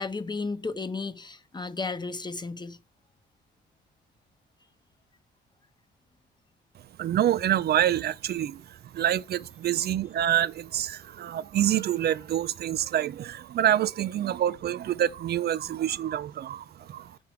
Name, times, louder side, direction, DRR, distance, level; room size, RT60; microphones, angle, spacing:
voice 1, 0.0-2.8, left 4 dB, 20° left, 1.0 m, -33 dB
voice 2, 7.0-17.2, right 11 dB, 55° right, 0.5 m, -27 dB
6.9 x 6.4 x 4.6 m
cardioid pair, 90°, 20 cm